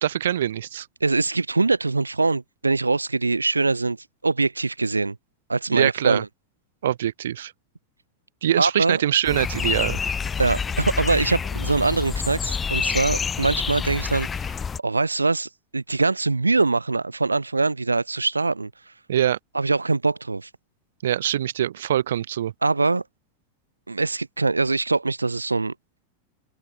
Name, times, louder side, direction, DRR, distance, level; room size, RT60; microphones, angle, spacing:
voice 1, 0.0-0.9 5.7-6.2 6.8-7.5 8.4-10.0 19.1-19.4 21.0-22.5, right 11 dB, 60° right, 3.7 m, -23 dB
voice 2, 1.0-5.2 5.5-6.3 8.6-9.0 10.4-18.9 19.5-20.5 22.6-23.0 23.9-25.7, right 3 dB, 80° right, 2.8 m, -23 dB
sound 1, 9.2-14.8, left 6 dB, 20° left, 6.0 m, -27 dB
open air
figure-of-eight pair, 90°, 0 cm